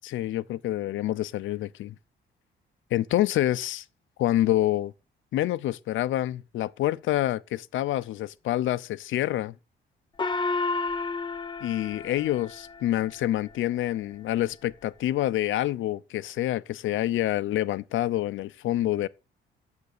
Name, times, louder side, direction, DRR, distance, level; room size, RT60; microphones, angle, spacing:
voice 1, 0.0-2.0 2.9-3.8 4.2-4.9 5.3-9.6 11.6-19.1, left 14 dB, 80° left, 0.7 m, -27 dB
Gong, 10.2-13.1, left 3 dB, 25° left, 0.7 m, -31 dB
9.5 x 7.5 x 6.7 m
cardioid pair, 90°, 20 cm